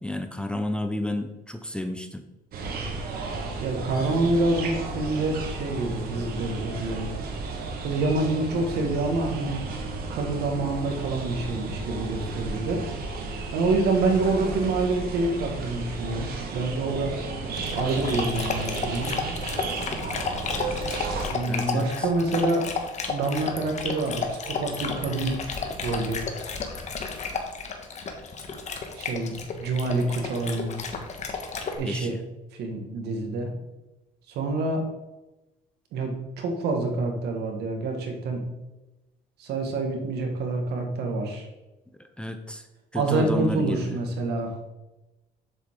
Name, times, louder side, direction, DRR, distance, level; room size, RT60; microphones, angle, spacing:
voice 1, 0.0-2.2 21.5-22.1 31.8-32.2 42.0-42.7 42.9-44.0, left 1 dB, 5° left, 7 dB, 0.6 m, -31 dB
sound 1, 2.5-21.3, right 3 dB, 60° right, 1.5 m, -33 dB
voice 2, 3.6-7.1 7.8-9.6 10.1-12.8 13.5-17.1 17.7-19.1 21.3-22.6 23.1-25.4 25.8-26.2 28.9-30.8 31.8-32.2 32.5-33.5 34.3-34.8 35.9-38.5 39.4-41.5 42.9-44.6, right 2 dB, 75° right, 3 dB, 1.7 m, -27 dB
Dog, 17.5-31.8, left 4 dB, 45° left, 1.2 m, -32 dB
7.2 x 7.1 x 3.7 m, 1.0 s
cardioid pair, 110°, 17 cm